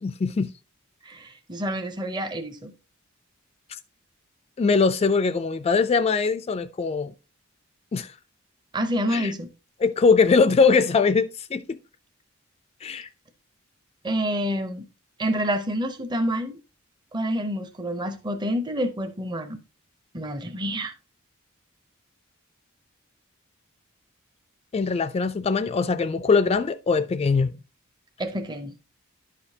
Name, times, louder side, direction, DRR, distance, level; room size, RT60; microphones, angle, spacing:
voice 1, 0.0-0.5 3.7-3.8 4.6-7.1 7.9-8.1 9.1-9.3 9.8-11.8 12.8-13.1 24.7-27.5, left 4 dB, 30° left, 0.3 m, -22 dB
voice 2, 1.1-2.7 8.7-9.5 14.0-14.9 15.2-16.6 17.1-19.6 20.1-20.9 28.2-28.7, equal, 20° right, 0.6 m, -28 dB
11.0 x 5.0 x 2.7 m
head